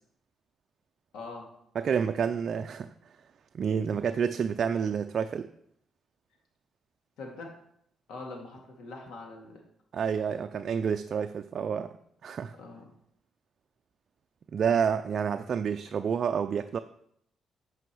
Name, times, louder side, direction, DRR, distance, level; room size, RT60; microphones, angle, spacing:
voice 1, 1.1-1.5 7.2-7.5 8.1-9.6 12.6-12.9, left 3 dB, 80° left, 1 dB, 2.2 m, -43 dB
voice 2, 1.8-2.9 3.5-5.5 9.9-11.9 12.2-12.5 14.5-16.8, right 7 dB, 55° right, 7 dB, 0.4 m, -29 dB
9.1 x 5.6 x 4.7 m, 0.71 s
cardioid pair, 90°, 0 cm